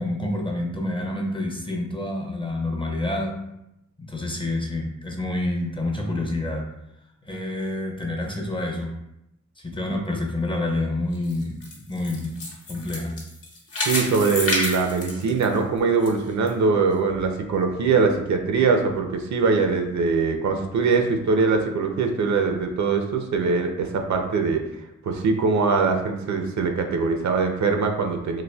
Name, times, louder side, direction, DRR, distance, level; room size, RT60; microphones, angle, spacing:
voice 1, 0.0-3.4 4.0-6.7 7.2-8.9 9.6-12.3 12.7-13.2, left 1 dB, 15° left, 1 dB, 0.5 m, -28 dB
sound 1, 11.1-16.1 16.5-16.6 17.2-17.3, left 2 dB, 45° left, 1.0 m, -29 dB
voice 2, 13.8-24.6 25.0-28.4, right 4 dB, 65° right, 4 dB, 0.5 m, -22 dB
4.0 x 2.6 x 2.2 m, 0.86 s
cardioid pair, 90°, 31 cm